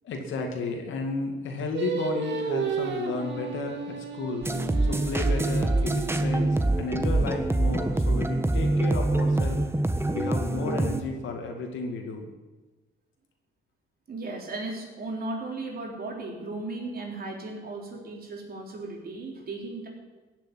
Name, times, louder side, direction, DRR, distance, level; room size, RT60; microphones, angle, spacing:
voice 1, 0.0-4.5 4.9-9.6 10.1-12.3, left 3 dB, 75° left, 3 dB, 2.4 m, -33 dB
Singing, 1.7-7.0, right 6 dB, 65° right, 2.4 m, -33 dB
sound 1, 4.4-11.0, right 2 dB, 10° right, 1.3 m, -25 dB
voice 2, 14.1-19.9, right 2 dB, 50° right, 0 dB, 3.8 m, -36 dB
15.5 x 7.4 x 9.6 m, 1.2 s
cardioid pair, 90°, 20 cm